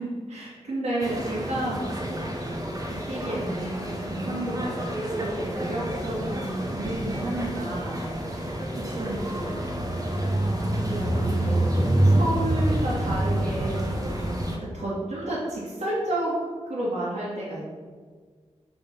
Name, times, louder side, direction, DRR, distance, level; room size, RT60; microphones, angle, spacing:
voice 1, 0.0-1.8 3.1-4.8 5.1-8.0 8.4-9.5 10.9-11.7 12.0-16.4 16.7-17.7, right 1 dB, 80° right, -10 dB, 2.0 m, -31 dB
sound 1, 1.0-14.6, right 1 dB, 30° right, 0.9 m, -27 dB
7.0 x 3.8 x 5.8 m, 1.5 s
wide cardioid pair, 175°, 12 cm